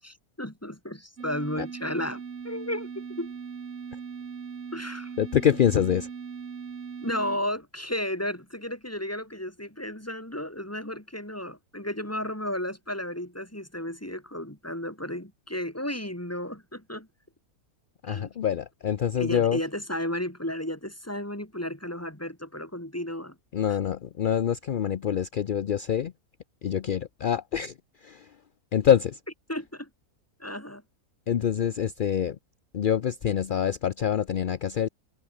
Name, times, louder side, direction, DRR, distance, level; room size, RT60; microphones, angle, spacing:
voice 1, 0.0-3.3 4.7-5.1 7.0-17.1 18.1-18.3 19.2-23.4 23.7-23.8 29.5-29.9 30.4-30.8, left 1 dB, 10° left, 5.2 m, -33 dB
sound 1, 1.2-7.4, right 6 dB, 50° right, 1.7 m, -39 dB
voice 2, 5.2-6.1 18.0-19.6 23.5-26.1 26.6-27.7 28.0-28.3 28.7-29.2 31.3-32.4 32.7-34.9, left 9 dB, 55° left, 0.6 m, -25 dB
omnidirectional pair, 1.6 m